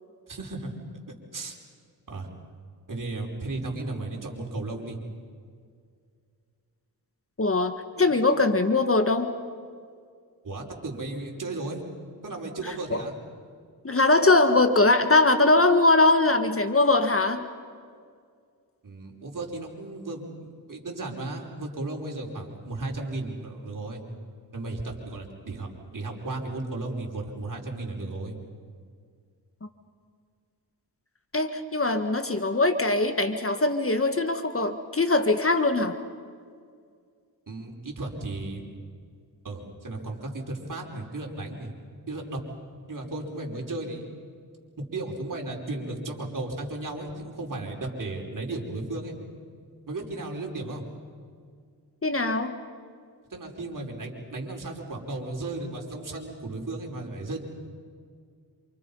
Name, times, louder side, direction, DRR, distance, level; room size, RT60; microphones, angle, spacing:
voice 1, 0.3-0.8 1.3-1.6 2.1-2.3 2.9-5.0 7.9-8.1 10.4-11.8 12.2-13.1 18.8-24.0 24.5-28.3 37.5-38.7 39.4-41.7 42.1-42.4 42.9-44.1 44.9-49.1 49.9-50.8 53.3-57.4, right 2 dB, 50° right, 0 dB, 5.1 m, -35 dB
voice 2, 7.4-9.3 12.6-13.0 13.8-17.4 31.3-35.9 52.0-52.5, left 2 dB, 30° left, 8 dB, 1.6 m, -22 dB
28.0 x 28.0 x 5.5 m, 2.1 s
cardioid pair, 65°, 41 cm